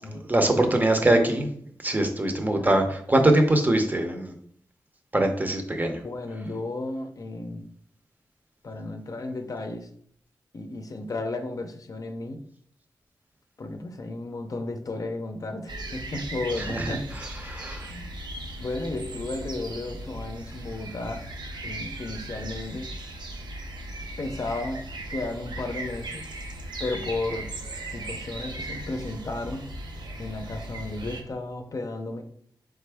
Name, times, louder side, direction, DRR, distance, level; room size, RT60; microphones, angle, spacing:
voice 1, 0.1-1.5 1.8-4.3 5.1-6.0 16.6-17.9, right 1 dB, 25° right, 5 dB, 0.7 m, -23 dB
voice 2, 2.6-2.9 6.0-7.7 8.6-9.9 10.5-12.4 13.6-17.0 17.9-18.1 18.6-21.2 21.6-22.9 24.2-24.8 25.1-26.2 26.8-27.5 27.9-29.6 30.2-32.2, left 2 dB, 50° left, 5 dB, 0.5 m, -33 dB
sound 1, 15.7-31.2, right 1 dB, 75° right, 0.7 m, -37 dB
4.1 x 3.4 x 3.4 m, 0.64 s
wide cardioid pair, 95°, 7 cm